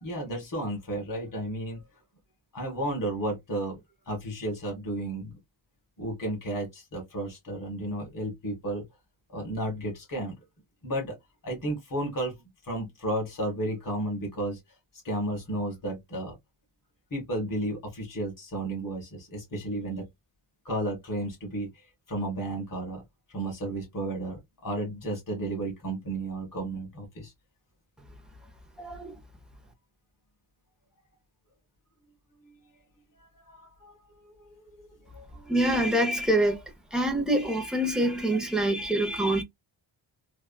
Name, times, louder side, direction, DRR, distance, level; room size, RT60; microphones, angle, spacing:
voice 1, 0.0-1.8 2.5-3.8 4.0-5.4 6.0-8.8 9.3-10.4 10.8-11.1 11.4-12.3 12.6-14.6 15.0-16.3 17.1-20.0 20.6-21.7 22.1-23.0 23.3-27.3 33.2-34.9 35.1-35.6 38.8-38.9, right 1 dB, 40° left, 1.7 m, -33 dB
voice 2, 28.8-29.1 35.5-36.6 36.9-39.4, right 1 dB, ahead, 0.5 m, -25 dB
3.5 x 2.2 x 2.2 m
wide cardioid pair, 155°, 48 cm